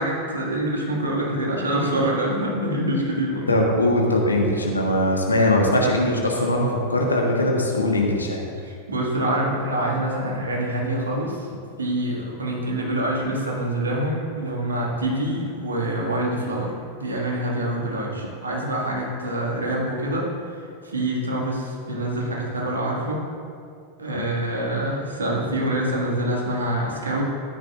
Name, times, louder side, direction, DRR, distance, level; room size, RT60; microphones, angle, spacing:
voice 1, 0.0-3.5 8.6-11.5 11.8-20.3 20.8-23.2 24.0-27.2, right 1 dB, 75° right, -3 dB, 2.0 m, -25 dB
voice 2, 3.5-8.4 10.2-10.3, left 1 dB, 80° left, 0 dB, 1.4 m, -21 dB
13.0 x 9.9 x 2.5 m, 2.3 s
figure-of-eight pair, 90°, 0 cm